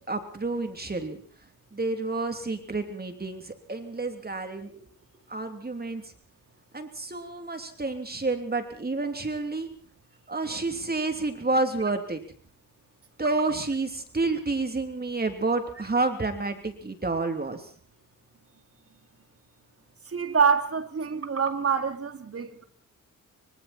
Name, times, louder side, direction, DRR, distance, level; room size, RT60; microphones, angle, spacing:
voice 1, 0.1-1.2 1.7-4.9 5.3-6.1 6.7-9.7 10.3-12.2 13.2-17.7, right 3 dB, 30° right, 3.1 m, -29 dB
voice 2, 20.1-22.6, right 6 dB, 45° right, 2.8 m, -26 dB
25.0 x 25.0 x 4.4 m
cardioid pair, 85°, 33 cm